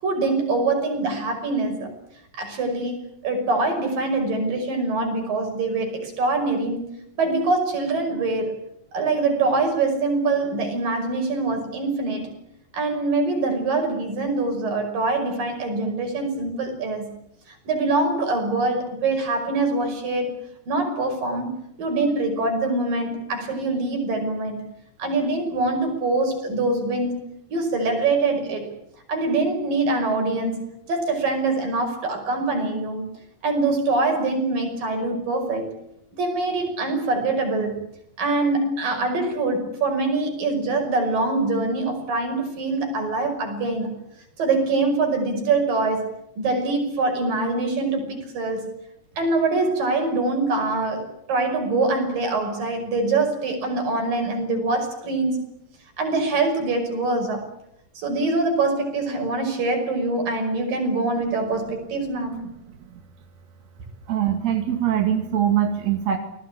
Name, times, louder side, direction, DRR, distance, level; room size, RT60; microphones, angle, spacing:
voice 1, 0.0-1.9 2.3-6.9 7.2-8.6 8.9-12.3 12.7-17.1 17.7-20.4 20.7-21.5 21.8-24.6 25.0-27.2 27.5-28.7 29.1-33.0 33.4-35.7 36.2-37.8 38.2-43.9 44.4-46.1 46.4-48.6 49.2-55.4 56.0-57.4 58.0-62.4, right 3 dB, 80° right, 4 dB, 7.3 m, -24 dB
voice 2, 64.1-66.2, right 10 dB, 55° right, 4 dB, 3.4 m, -22 dB
29.0 x 20.0 x 8.7 m, 0.78 s
omnidirectional pair, 3.9 m